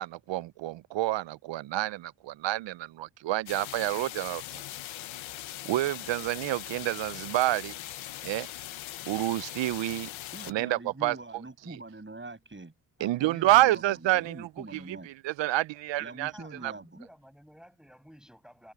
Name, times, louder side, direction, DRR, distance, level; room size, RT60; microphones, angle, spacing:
voice 1, 0.0-4.6 5.6-7.8 8.2-8.5 9.1-10.1 10.5-11.2 13.0-16.3 16.6-16.7, right 16 dB, 70° right, 0.7 m, -28 dB
sound 1, 3.5-10.5, left 14 dB, 80° left, 1.4 m, -41 dB
voice 2, 10.3-12.7 13.0-15.1 16.0-16.9, right 2 dB, 25° right, 7.9 m, -44 dB
voice 3, 16.3-18.7, equal, ahead, 6.8 m, -53 dB
supercardioid pair, 45°, 46 cm